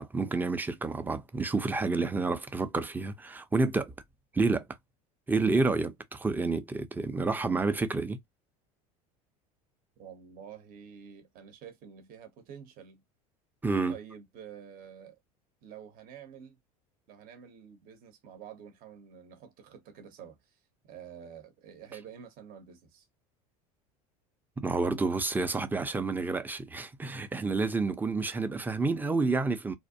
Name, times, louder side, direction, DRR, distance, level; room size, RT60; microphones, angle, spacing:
voice 1, 0.0-3.9 4.3-4.6 5.3-8.2 13.6-14.0 24.6-29.7, right 3 dB, 10° right, 0.5 m, -29 dB
voice 2, 10.0-13.0 13.9-15.2 15.6-16.6 17.1-20.6 20.9-23.1, right 8 dB, 45° right, 0.8 m, -48 dB
2.5 x 2.1 x 2.6 m
hypercardioid pair, 80°, 20 cm